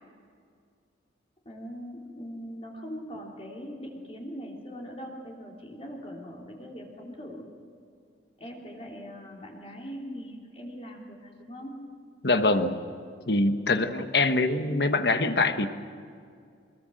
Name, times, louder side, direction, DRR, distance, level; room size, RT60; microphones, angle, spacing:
voice 1, 1.4-7.5 8.4-11.8 13.5-13.8, equal, 30° left, -2 dB, 3.2 m, -41 dB
voice 2, 12.2-12.8 13.3-15.7, left 2 dB, 60° left, 8 dB, 1.3 m, -24 dB
24.5 x 20.5 x 7.7 m, 2.3 s
head